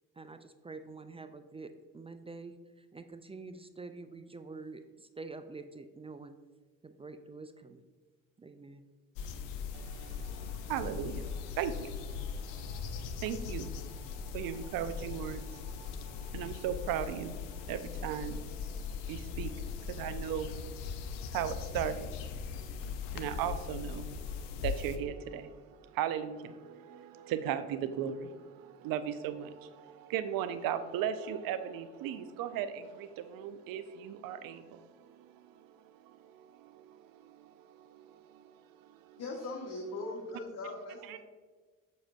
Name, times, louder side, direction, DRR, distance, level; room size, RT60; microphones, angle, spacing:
voice 1, 0.2-6.3 6.8-7.8 8.4-8.8, right 3 dB, 15° right, 9 dB, 0.4 m, -47 dB
sound 1, 9.2-25.0, left 6 dB, 75° left, 0.6 m, -40 dB
voice 2, 9.7-39.2 41.1-41.2, right 9 dB, 65° right, 11 dB, 0.6 m, -38 dB
voice 3, 39.2-41.2, left 2 dB, 40° left, -1 dB, 1.2 m, -40 dB
7.2 x 5.9 x 2.5 m, 1.4 s
hypercardioid pair, 55°, 38 cm